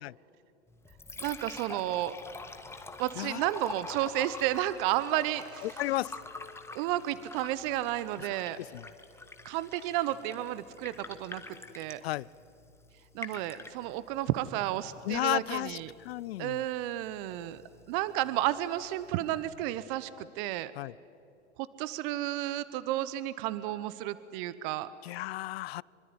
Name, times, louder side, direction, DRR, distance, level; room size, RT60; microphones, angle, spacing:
Liquid, 0.7-19.7, left 3 dB, 5° left, 1.7 m, -47 dB
voice 1, 1.2-2.1 3.0-5.7 6.7-8.6 9.4-11.4 11.7-12.0 13.1-15.9 16.4-17.6 17.9-20.7 21.8-24.9, right 14 dB, 45° right, 15 dB, 1.0 m, -32 dB
voice 2, 5.6-6.1 8.6-8.8 12.0-12.3 15.1-16.6 20.8-20.9 25.0-25.8, left 17 dB, 60° left, 25 dB, 0.6 m, -33 dB
25.0 x 24.5 x 9.7 m, 2.7 s
hypercardioid pair, 100°, 35 cm